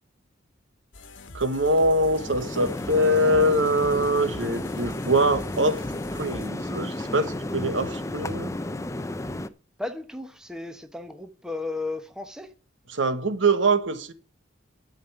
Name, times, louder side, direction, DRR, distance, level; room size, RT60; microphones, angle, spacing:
sound 1, 0.9-6.5, left 2 dB, 80° left, 1.2 m, -44 dB
voice 1, 1.3-5.8 6.1-8.5 12.9-14.1, right 1 dB, 75° right, 1.2 m, -23 dB
sound 2, 1.7-9.5, left 1 dB, 15° left, 0.5 m, -33 dB
voice 2, 9.8-12.5, left 2 dB, 5° right, 0.9 m, -34 dB
12.0 x 5.2 x 8.1 m
head